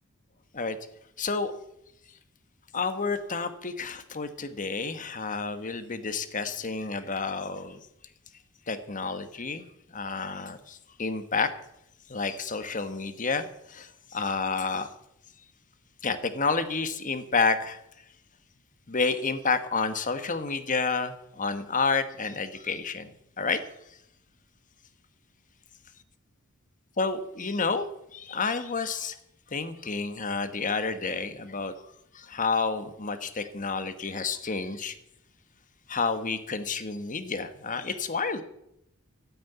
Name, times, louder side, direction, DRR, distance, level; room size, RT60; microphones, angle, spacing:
voice 1, 1.2-1.5 2.7-7.8 8.7-9.6 9.9-11.5 12.1-14.9 16.0-17.8 18.9-23.6 27.0-27.9 28.1-29.2 29.5-31.7 32.1-34.9 35.9-38.4, left 4 dB, 40° left, 10 dB, 1.3 m, -30 dB
13.5 x 8.6 x 9.3 m, 0.80 s
head